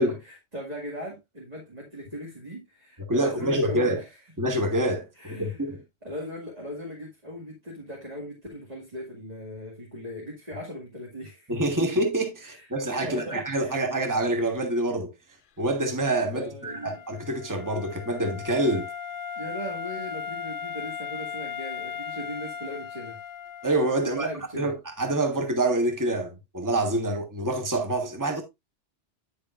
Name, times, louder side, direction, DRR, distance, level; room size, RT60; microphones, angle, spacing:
voice 1, 0.0-4.0 5.2-5.6 6.0-11.5 12.4-12.7 13.0-13.9 16.3-17.0 19.4-23.2 24.0-24.7, equal, 35° right, 2.3 m, -39 dB
voice 2, 3.1-4.0 4.4-5.8 11.5-15.1 15.6-18.9 23.6-24.3 24.5-28.4, right 1 dB, 15° right, 1.4 m, -26 dB
Wind instrument woodwind instrument, 16.7-24.5, left 7 dB, 55° left, 0.7 m, -37 dB
9.8 x 6.8 x 2.5 m
omnidirectional pair, 1.2 m